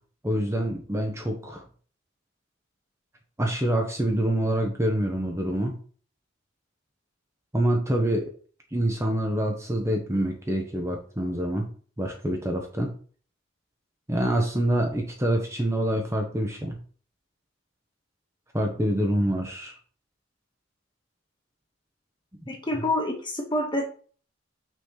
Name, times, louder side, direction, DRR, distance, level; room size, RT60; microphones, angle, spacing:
voice 1, 0.2-1.6 3.4-5.7 7.5-8.3 8.7-11.7 12.0-12.9 14.1-16.8 18.5-19.8, right 1 dB, 15° right, 1 dB, 1.2 m, -26 dB
voice 2, 22.5-23.8, left 1 dB, 25° left, 1 dB, 1.8 m, -27 dB
6.2 x 4.3 x 5.8 m, 0.42 s
head